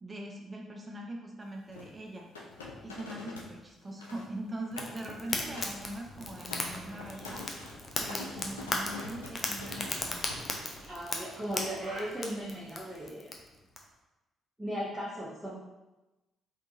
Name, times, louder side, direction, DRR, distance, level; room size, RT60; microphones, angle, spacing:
voice 1, 0.0-2.3 2.8-7.4 8.0-10.2, right 1 dB, 25° right, 1 dB, 0.5 m, -42 dB
sound 1, 1.7-3.5 3.8-4.3 4.6-5.0 5.3-5.8 6.2-10.9, left 2 dB, 80° left, 0.4 m, -45 dB
Fire, 4.7-13.8, left 2 dB, 30° left, 0.6 m, -37 dB
sound 2, 6.2-13.1, right 1 dB, 65° right, 0.7 m, -53 dB
voice 2, 10.9-13.3 14.6-15.6, equal, 10° right, -8 dB, 0.9 m, -37 dB
3.5 x 2.7 x 2.7 m, 1.0 s
figure-of-eight pair, 40°, 0 cm